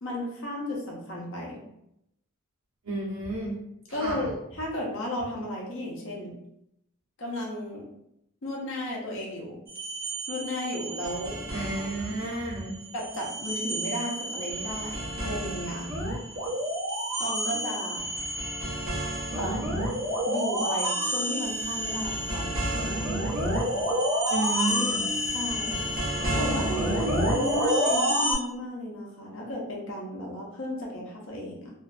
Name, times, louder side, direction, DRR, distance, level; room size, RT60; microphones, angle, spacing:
voice 1, 0.0-1.6 3.9-6.4 7.2-7.8 8.4-9.6 10.3-11.4 12.9-15.9 17.2-18.1 19.3-19.8 20.3-22.8 25.3-25.8 26.4-31.7, left 1 dB, 65° left, -3 dB, 0.8 m, -34 dB
voice 2, 2.8-3.6 3.9-4.3 11.5-12.8 24.3-25.0, right 2 dB, 70° right, -4 dB, 0.9 m, -31 dB
sound 1, 9.7-12.4 12.7-28.3, equal, 45° right, 0.8 m, -29 dB
2.6 x 2.5 x 2.3 m, 0.80 s
head